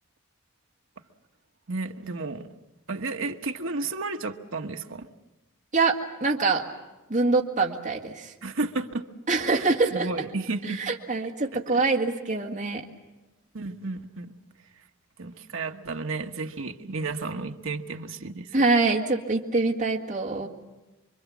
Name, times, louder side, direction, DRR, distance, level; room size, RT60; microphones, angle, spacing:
voice 1, 1.7-2.5 2.9-5.1 8.4-9.0 9.5-9.6 9.9-10.8 11.5-11.8 13.5-14.4 15.2-18.5, right 3 dB, 65° right, 4 dB, 1.2 m, -32 dB
voice 2, 5.7-6.6 7.1-8.3 9.3-10.1 10.7-12.8 18.5-20.5, right 3 dB, 35° right, -1 dB, 2.0 m, -24 dB
26.5 x 24.0 x 7.3 m, 1.1 s
head